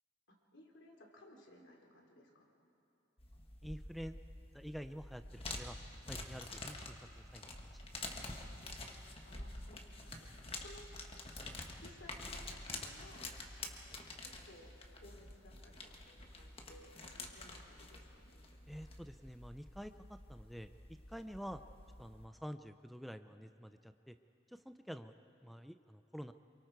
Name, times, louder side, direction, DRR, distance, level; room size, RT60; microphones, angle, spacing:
voice 1, 0.3-2.5 8.0-8.2 9.2-11.0 11.8-13.4 14.2-18.5, left 1 dB, 80° left, 0 dB, 3.4 m, -60 dB
sound 1, 3.2-22.2, left 2 dB, 30° left, 1.5 m, -48 dB
voice 2, 3.6-4.2 4.5-5.8 6.1-7.8 18.7-20.7 21.1-21.6 22.0-24.2 24.5-25.1 25.4-26.3, equal, ahead, 9 dB, 0.4 m, -48 dB
28.0 x 23.5 x 4.7 m, 2.7 s
head